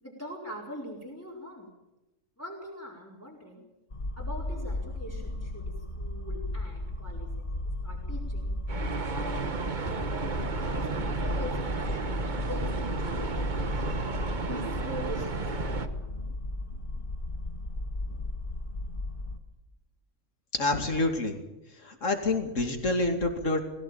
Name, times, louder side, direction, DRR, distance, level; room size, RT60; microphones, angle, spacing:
voice 1, 0.0-1.7 2.4-3.6 4.2-7.5 7.8-8.5 9.1-10.2 10.6-11.1 11.4-11.9 12.3-13.9 14.5-16.1, equal, 10° left, -4 dB, 4.5 m, -43 dB
sound 1, 3.9-19.4, left 1 dB, 40° left, 2.0 m, -35 dB
sound 2, 8.7-15.9, right 4 dB, 40° right, 1.2 m, -33 dB
voice 2, 20.5-21.4 21.8-23.6, left 2 dB, 75° left, 5 dB, 3.0 m, -27 dB
21.0 x 16.5 x 9.0 m, 0.99 s
omnidirectional pair, 1.3 m